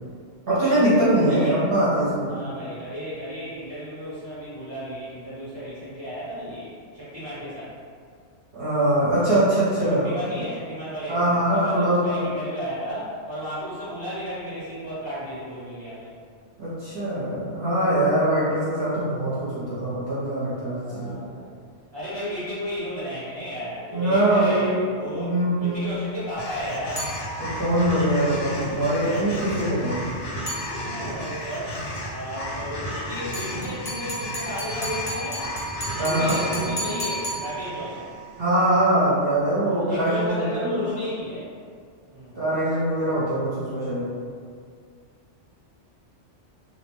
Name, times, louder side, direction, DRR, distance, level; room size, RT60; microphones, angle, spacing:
voice 1, 0.5-2.4 8.5-10.1 11.1-12.2 16.6-21.2 23.9-24.6 25.1-25.8 27.4-30.1 36.0-36.4 38.4-40.8 42.3-44.1, right 1 dB, 55° right, -11 dB, 0.8 m, -22 dB
voice 2, 2.3-7.8 9.7-16.1 20.8-21.6 21.9-27.1 30.7-31.8 32.1-35.5 36.0-38.1 39.7-41.5 42.1-42.3, equal, 25° right, -13 dB, 0.7 m, -34 dB
sound 1, 26.4-38.7, equal, 75° left, 0.9 m, -34 dB
sound 2, 27.0-27.7 30.5-31.2 33.3-38.0, equal, 15° left, 0.7 m, -33 dB
2.5 x 2.1 x 3.0 m, 2.1 s
omnidirectional pair, 1.2 m